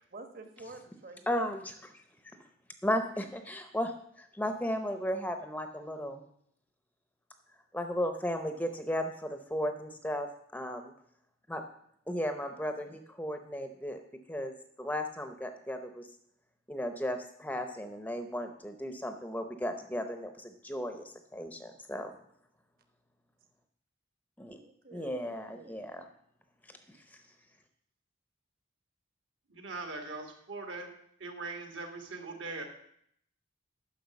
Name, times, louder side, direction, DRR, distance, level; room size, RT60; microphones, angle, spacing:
voice 1, 0.1-1.4 12.4-13.0 24.6-25.9, right 3 dB, 45° right, 7 dB, 1.2 m, -50 dB
voice 2, 1.3-2.4 2.8-3.9 4.4-6.2 7.7-10.9 11.5-11.6 12.1-14.0 14.3-16.1 16.7-22.1 24.4-24.6 24.9-26.1 27.1-27.2, equal, 10° left, 7 dB, 0.6 m, -35 dB
voice 3, 29.5-30.9 31.2-32.6, right 3 dB, 70° right, 4 dB, 1.9 m, -40 dB
10.5 x 6.1 x 7.1 m, 0.69 s
head